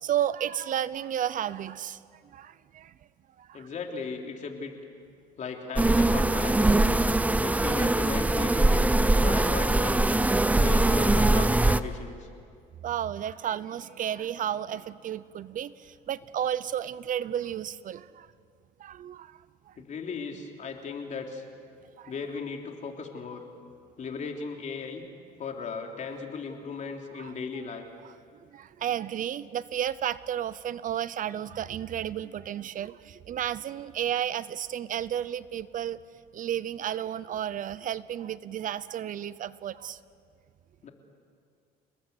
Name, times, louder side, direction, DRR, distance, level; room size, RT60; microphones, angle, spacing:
voice 1, 0.0-2.9 3.4-3.7 8.5-8.6 10.3-10.5 12.8-18.3 18.8-19.4 19.7-19.8 22.0-22.1 27.2-27.3 28.0-28.1 28.5-36.0 36.3-40.0, right 10 dB, 50° right, 17 dB, 0.7 m, -32 dB
voice 2, 3.5-4.8 5.4-7.0 7.4-8.9 9.2-10.2 10.5-12.3 19.8-21.4 22.1-23.4 24.0-25.1 25.4-27.9 40.8-40.9, left 5 dB, 45° left, 2 dB, 3.4 m, -37 dB
sound 1, 5.8-11.8, right 2 dB, 10° right, 0.7 m, -22 dB
28.5 x 20.0 x 8.1 m, 2.3 s
cardioid pair, 110°, 17 cm